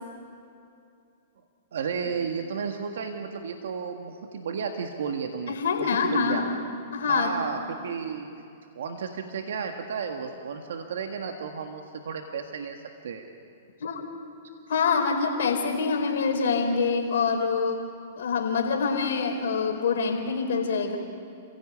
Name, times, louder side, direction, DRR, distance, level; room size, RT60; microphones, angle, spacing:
voice 1, 1.7-6.4 7.1-8.3 8.7-13.3, right 6 dB, 75° right, 4 dB, 1.7 m, -33 dB
voice 2, 5.5-6.5 6.9-7.3 13.8-14.0 14.7-17.8 18.2-21.0, left 5 dB, 75° left, 3 dB, 4.3 m, -25 dB
28.5 x 16.5 x 8.6 m, 2.5 s
hypercardioid pair, 125°, 0 cm